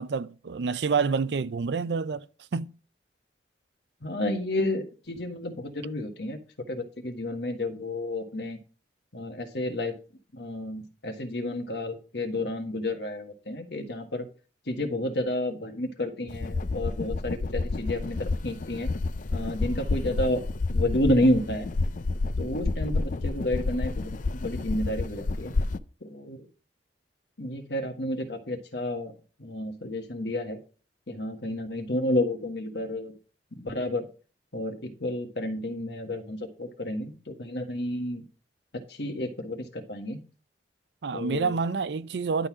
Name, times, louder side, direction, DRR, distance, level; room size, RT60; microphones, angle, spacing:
voice 1, 0.0-2.2 2.5-2.7 41.0-42.5, right 5 dB, 65° right, 0.5 m, -28 dB
voice 2, 4.0-6.4 6.7-8.6 9.1-9.9 10.3-14.2 14.7-18.9 19.3-20.4 20.7-21.7 22.4-24.1 24.4-25.5 26.0-26.4 27.4-29.1 29.4-30.6 31.1-33.1 33.6-34.0 34.5-38.2 39.0-40.2 41.1-41.6, left 1 dB, 65° left, 1.5 m, -30 dB
sound 1, 16.3-25.8, left 3 dB, 45° left, 0.5 m, -29 dB
11.0 x 4.0 x 6.1 m
head